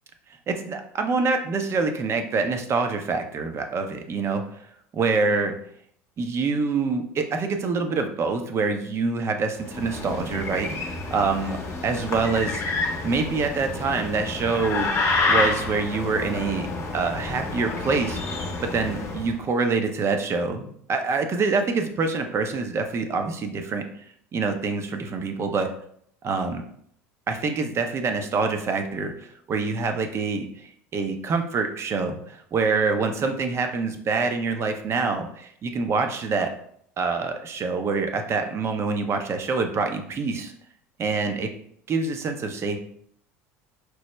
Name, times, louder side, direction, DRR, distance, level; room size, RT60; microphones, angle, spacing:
voice 1, 0.5-4.4 5.0-5.5 6.2-11.6 11.8-12.6 13.0-16.7 16.9-18.2 18.6-23.8 24.3-25.7 26.2-26.6 27.3-36.5 37.0-40.5 41.0-41.5 41.9-42.8, right 4 dB, 35° right, 6 dB, 0.6 m, -26 dB
sound 1, 9.6-19.3, left 3 dB, 40° left, 0.8 m, -28 dB
4.6 x 2.1 x 3.1 m, 0.65 s
hypercardioid pair, 85°, 7 cm